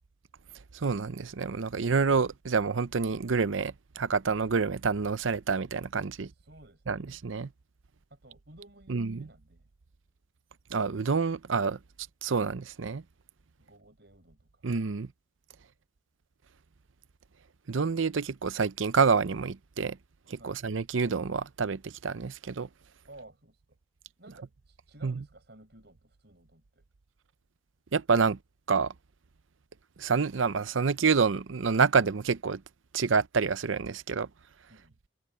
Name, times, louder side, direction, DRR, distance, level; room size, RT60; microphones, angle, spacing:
voice 1, 0.7-6.3 6.9-7.5 8.9-9.3 10.7-11.8 12.2-13.0 14.6-15.1 17.7-20.0 20.3-22.7 25.0-25.2 27.9-28.4 28.7-28.9 30.0-32.6 32.9-34.3, right 5 dB, 90° right, 0.7 m, -28 dB
voice 2, 6.1-7.1 8.1-9.7 13.6-14.6 20.4-20.6 23.1-23.8 24.2-26.9 34.7-35.0, right 1 dB, 60° right, 5.8 m, -55 dB
head